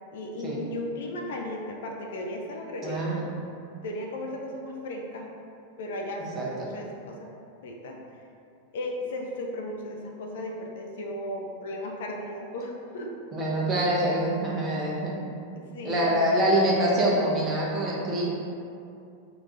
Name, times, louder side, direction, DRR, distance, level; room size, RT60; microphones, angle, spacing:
voice 1, 0.1-3.1 3.8-5.3 5.8-7.3 7.6-8.0 8.7-13.2 15.6-16.2, left 1 dB, 55° left, 1 dB, 0.4 m, -35 dB
voice 2, 2.8-3.3 6.3-6.7 13.3-15.1 15.8-18.3, right 1 dB, 25° right, -5 dB, 0.9 m, -25 dB
3.7 x 2.4 x 3.7 m, 2.5 s
figure-of-eight pair, 90°, 0 cm